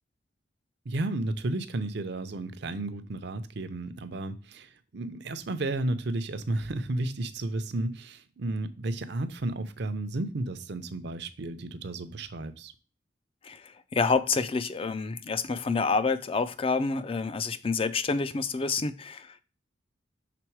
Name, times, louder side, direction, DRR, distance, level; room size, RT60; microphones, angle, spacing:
voice 1, 0.9-12.7, right 2 dB, 65° right, 0.6 m, -33 dB
voice 2, 13.9-19.4, left 4 dB, 30° left, 0.4 m, -28 dB
6.0 x 3.5 x 4.6 m
head